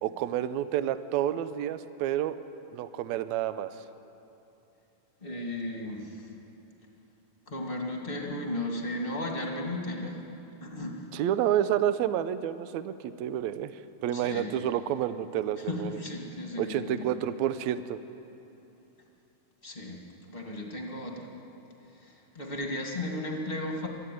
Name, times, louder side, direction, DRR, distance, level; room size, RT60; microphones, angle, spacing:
voice 1, 0.0-2.4 2.7-3.7 11.1-13.7 14.0-16.0 16.6-18.0, right 11 dB, 75° right, 13 dB, 1.8 m, -29 dB
voice 2, 5.2-6.3 7.5-10.2 10.6-11.0 14.1-14.5 15.6-17.1 19.6-21.3 21.9-23.9, left 1 dB, 20° left, 0 dB, 2.0 m, -35 dB
23.0 x 13.5 x 9.3 m, 2.9 s
omnidirectional pair, 3.8 m